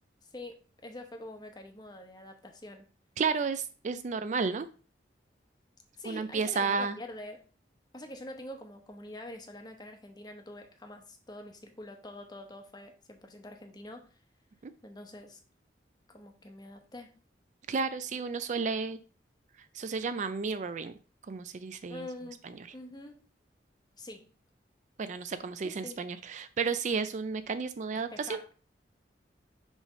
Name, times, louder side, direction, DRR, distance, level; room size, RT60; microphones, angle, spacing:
voice 1, 0.3-2.9 6.0-7.4 7.9-14.1 14.8-15.4 16.1-17.1 21.9-22.4 22.7-23.2 24.0-24.3 25.6-26.0 27.9-28.5, left 1 dB, 25° left, 5 dB, 1.0 m, -45 dB
voice 2, 3.2-4.7 6.1-7.0 17.7-19.0 19.7-20.9 21.3-22.1 25.0-28.4, right 5 dB, 45° right, 12 dB, 0.4 m, -32 dB
6.2 x 3.3 x 5.3 m, 0.38 s
head